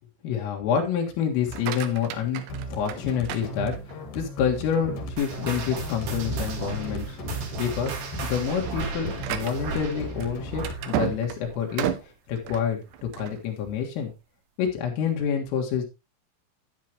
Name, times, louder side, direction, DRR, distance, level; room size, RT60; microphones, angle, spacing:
voice 1, 0.2-2.4 2.7-3.8 4.1-7.2 7.6-7.9 8.2-11.9 12.3-14.1 14.6-15.9, left 7 dB, 80° left, 0 dB, 4.2 m, -27 dB
sound 1, 1.3-4.2 4.7-5.1 5.6-5.7 6.1-6.3 6.9-7.2 7.5-13.4, right 11 dB, 75° right, 2.6 m, -34 dB
sound 2, 2.5-11.1, right 1 dB, 55° left, 2.7 m, -37 dB
sound 3, 5.2-12.0 12.3-12.6 13.2-13.3 14.1-14.2, right 3 dB, 60° right, 4.1 m, -35 dB
10.5 x 9.2 x 3.0 m, 0.24 s
omnidirectional pair, 5.9 m